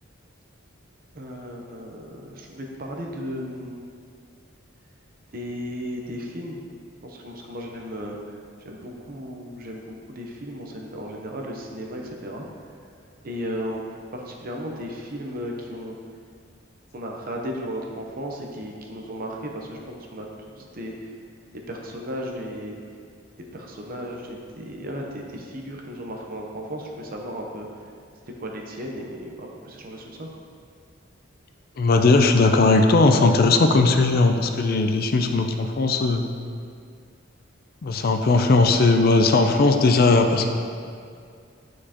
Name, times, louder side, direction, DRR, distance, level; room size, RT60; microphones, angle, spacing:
voice 1, 1.1-3.9 5.3-6.7 7.0-8.4 8.6-12.4 13.2-13.8 14.1-16.0 16.9-21.1 21.7-22.8 23.5-27.7 28.4-30.3, equal, 45° right, 0 dB, 0.7 m, -35 dB
voice 2, 31.8-36.3 37.8-40.5, left 3 dB, 50° left, 5 dB, 0.4 m, -18 dB
8.7 x 4.7 x 2.9 m, 2.2 s
head